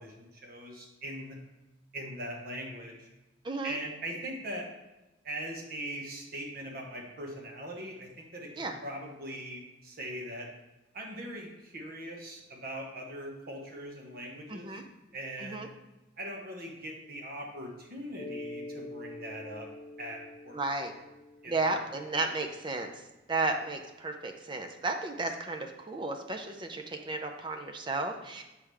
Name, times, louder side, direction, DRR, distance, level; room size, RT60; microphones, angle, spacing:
voice 1, 0.0-1.4 1.9-3.1 3.6-4.7 5.2-10.5 10.9-14.8 15.1-15.7 16.2-19.7 20.0-20.6 21.4-21.8, right 1 dB, 50° right, 0 dB, 1.1 m, -41 dB
voice 2, 3.4-3.8 8.6-8.8 14.5-14.8 15.4-15.7 20.5-20.9 21.5-22.9 23.3-28.4, right 3 dB, 25° right, 4 dB, 0.5 m, -33 dB
Mallet percussion, 18.2-22.6, left 2 dB, 35° left, 0.5 m, -45 dB
7.2 x 4.8 x 3.4 m, 1.0 s
head